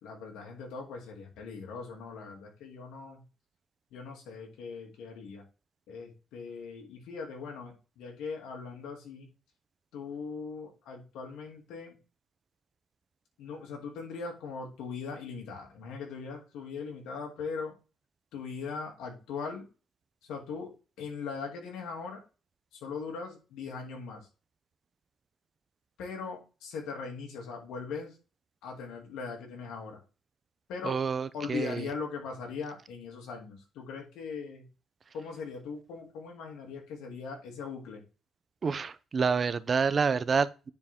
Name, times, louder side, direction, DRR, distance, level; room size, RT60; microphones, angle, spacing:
voice 1, 0.0-3.2 3.9-5.4 5.9-9.3 9.9-12.0 13.4-17.7 18.3-19.7 20.2-20.7 21.0-22.2 22.7-24.3 26.0-28.2 28.6-30.0 30.7-31.0 31.3-34.7 35.1-38.0, left 5 dB, 90° left, 2.8 m, -40 dB
voice 2, 30.8-31.9 38.6-40.7, right 5 dB, 40° right, 0.7 m, -28 dB
9.6 x 4.5 x 3.7 m
cardioid pair, 90°, 0 cm